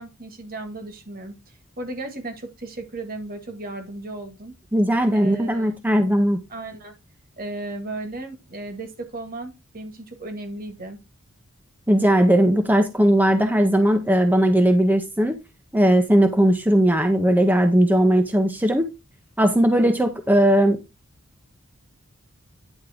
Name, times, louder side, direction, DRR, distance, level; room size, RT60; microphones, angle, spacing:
voice 1, 0.0-1.3 1.8-4.5 5.1-5.8 6.5-6.9 7.4-11.0, right 2 dB, 45° right, 1.9 m, -35 dB
voice 2, 4.7-6.4 11.9-15.4 15.7-18.9 19.4-20.8, equal, 10° right, 0.7 m, -18 dB
9.9 x 3.6 x 5.0 m
head